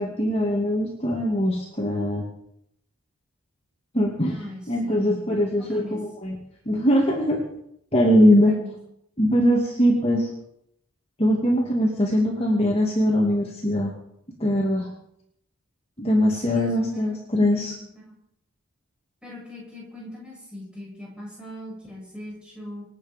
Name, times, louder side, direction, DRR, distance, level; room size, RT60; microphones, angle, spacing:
voice 1, 0.0-2.2 3.9-4.4 4.7-6.4 6.7-7.4 7.9-8.5 9.2-10.3 11.2-13.9 14.4-14.9 16.0-17.7, equal, 25° left, -2 dB, 2.5 m, -21 dB
voice 2, 4.3-6.0 8.1-8.7 16.3-18.2 19.2-22.9, left 1 dB, 5° right, -5 dB, 7.5 m, -40 dB
26.5 x 9.0 x 5.3 m, 0.76 s
head